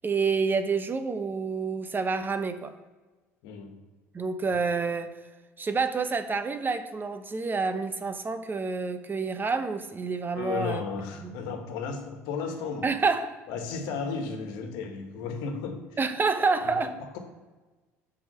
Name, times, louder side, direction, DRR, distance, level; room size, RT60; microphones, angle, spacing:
voice 1, 0.0-2.7 4.1-5.2 5.6-10.8 11.2-11.4 12.8-13.4 16.0-16.9, right 4 dB, 25° right, 10 dB, 0.9 m, -28 dB
voice 2, 3.4-3.8 10.4-12.9 13.5-15.8 16.7-17.2, left 5 dB, 65° left, 5 dB, 1.5 m, -34 dB
6.1 x 5.1 x 6.7 m, 1.3 s
hypercardioid pair, 65°, 8 cm